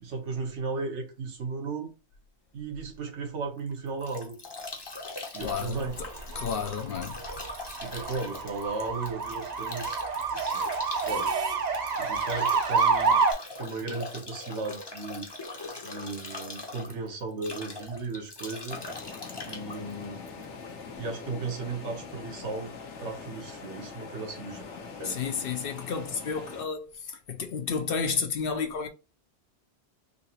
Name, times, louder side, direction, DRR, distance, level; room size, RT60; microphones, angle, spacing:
voice 1, 0.0-1.9 2.5-4.4 5.3-6.1 7.7-10.0 10.3-10.6 11.1-11.3 12.0-13.2 13.6-15.3 15.8-18.8 19.5-20.2 21.0-22.7 23.0-24.6 25.0-25.2, right 3 dB, 85° right, 1.3 m, -35 dB
Bathtub (filling or washing) / Drip / Trickle dribble, 3.6-20.8, left 2 dB, 25° left, 0.6 m, -41 dB
voice 2, 5.4-5.8 6.4-7.2 25.0-26.9 27.3-28.9, left 6 dB, 60° left, 0.7 m, -31 dB
sound 1, 5.4-13.3, right 5 dB, 50° right, 0.6 m, -28 dB
sound 2, 18.7-26.6, left 5 dB, 85° left, 1.1 m, -43 dB
3.9 x 2.8 x 2.8 m
omnidirectional pair, 1.2 m